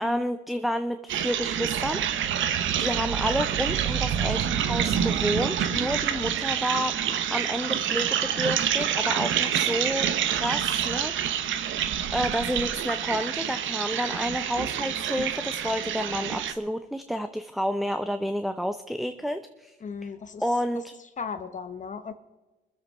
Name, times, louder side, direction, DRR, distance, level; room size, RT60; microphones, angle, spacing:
voice 1, 0.0-2.0 2.8-11.4 12.1-19.8 20.0-20.1 20.4-20.9, equal, ahead, 8 dB, 0.6 m, -30 dB
sound 1, 1.1-16.5, right 9 dB, 75° right, 1.1 m, -27 dB
voice 2, 19.8-20.4 21.2-22.1, left 5 dB, 40° left, 9 dB, 0.8 m, -36 dB
22.0 x 7.7 x 5.5 m, 1.1 s
cardioid pair, 90°, 20 cm